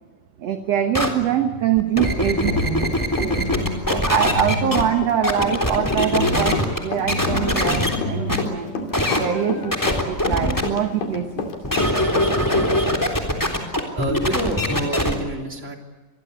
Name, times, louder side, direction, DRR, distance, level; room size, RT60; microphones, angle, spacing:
voice 1, 0.4-3.5 3.9-8.7 9.2-11.5, right 9 dB, 55° right, 6 dB, 2.1 m, -24 dB
sound 1, 0.9-1.1 1.8-4.8 5.2-6.8 7.1-8.0 8.3-8.4 8.9-9.2 9.7-10.6 11.6-15.1, left 1 dB, 5° left, 3.1 m, -22 dB
Run, 2.0-3.6 3.9-12.7, left 4 dB, 75° left, 4.5 m, -29 dB
sound 2, 2.4-9.8, left 1 dB, 40° left, 4.8 m, -31 dB
voice 2, 13.9-15.8, right 2 dB, 20° right, 2 dB, 3.3 m, -27 dB
26.5 x 22.0 x 8.2 m, 1.2 s
omnidirectional pair, 4.0 m